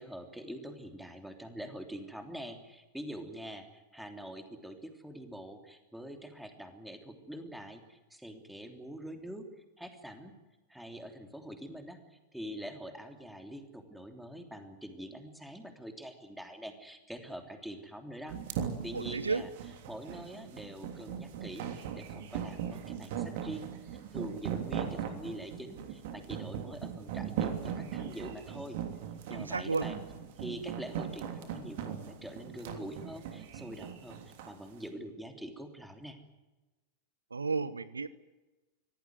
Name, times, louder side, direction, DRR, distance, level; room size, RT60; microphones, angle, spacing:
voice 1, 0.0-9.5 9.8-10.3 10.7-19.5 19.9-28.8 29.3-30.0 30.4-34.2 34.5-36.2, right 1 dB, ahead, 5 dB, 3.2 m, -45 dB
sound 1, 18.3-34.6, right 9 dB, 50° right, 3.2 m, -38 dB
voice 2, 18.9-19.4 29.3-29.9 37.3-38.1, right 4 dB, 75° right, 18 dB, 0.8 m, -32 dB
25.0 x 17.5 x 9.4 m, 1.1 s
figure-of-eight pair, 90°, 0 cm